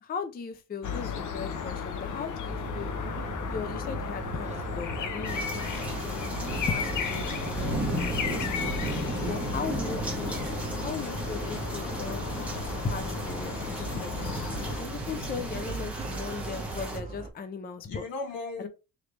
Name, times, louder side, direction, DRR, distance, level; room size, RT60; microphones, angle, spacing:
voice 1, 0.0-2.9 3.4-5.8 6.0-6.3 6.7-8.8 9.3-10.4 10.8-12.2 12.8-18.0 18.6-18.7, left 5 dB, 25° left, 0.5 m, -38 dB
sound 1, 0.8-14.8, left 6 dB, 60° left, 0.8 m, -35 dB
sound 2, 2.5-17.3, right 3 dB, 20° right, 1.0 m, -39 dB
sound 3, 5.2-17.0, right 1 dB, 5° right, 1.3 m, -35 dB
voice 2, 8.8-9.5 15.1-15.8 17.9-18.7, left 3 dB, 75° left, 1.9 m, -39 dB
3.9 x 3.2 x 3.2 m
cardioid pair, 100°, 36 cm